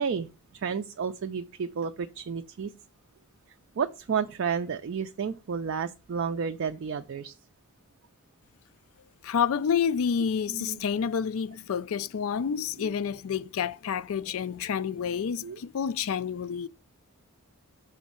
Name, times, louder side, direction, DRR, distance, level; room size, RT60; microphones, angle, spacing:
voice 1, 0.0-2.7 3.8-7.3 10.5-10.8 12.8-12.9 15.4-15.6, right 6 dB, 55° right, 0.4 m, -31 dB
voice 2, 9.2-16.7, left 7 dB, 65° left, 0.4 m, -29 dB
6.1 x 3.8 x 5.4 m
head